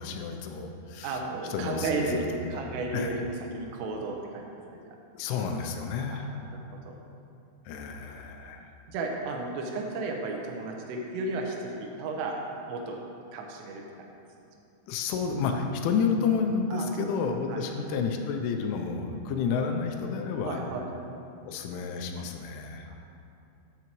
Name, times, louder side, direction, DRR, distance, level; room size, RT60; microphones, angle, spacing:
voice 1, 0.0-1.2 1.5-3.2 5.1-6.3 7.7-8.7 14.9-20.6 21.5-22.9, left 5 dB, 85° left, 4 dB, 3.1 m, -30 dB
voice 2, 1.0-2.2 2.5-4.4 4.7-4.8 6.0-7.0 8.9-12.4 12.7-13.0 13.3-13.8 16.7-17.1 17.5-17.6 20.4-20.9 22.9-23.0, right 3 dB, 85° right, 1 dB, 3.6 m, -34 dB
12.5 x 8.1 x 3.1 m, 2.7 s
omnidirectional pair, 5.6 m